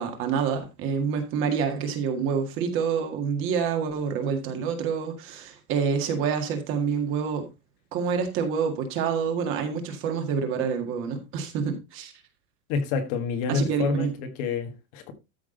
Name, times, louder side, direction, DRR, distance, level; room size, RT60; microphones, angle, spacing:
voice 1, 0.0-7.4 7.9-12.1 13.5-14.1, right 6 dB, 30° right, 1.9 m, -27 dB
voice 2, 12.7-15.1, left 5 dB, 35° left, 1.6 m, -28 dB
13.5 x 6.0 x 3.9 m
supercardioid pair, 175°, 45 cm